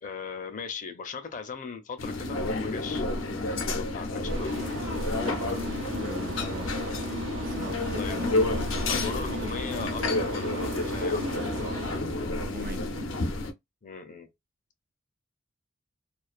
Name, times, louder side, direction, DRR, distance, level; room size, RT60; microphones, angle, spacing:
voice 1, 0.0-3.0 3.7-4.9 8.0-8.6 8.9-11.5 13.8-14.3, left 5 dB, 40° left, 0.5 m, -39 dB
sound 1, 2.0-13.5, left 2 dB, 85° left, 0.6 m, -30 dB
sound 2, 4.3-12.0, right 1 dB, 75° right, 0.7 m, -36 dB
voice 2, 5.2-6.8 7.4-8.3 11.7-12.8, right 2 dB, 50° right, 0.5 m, -42 dB
2.4 x 2.3 x 2.4 m
head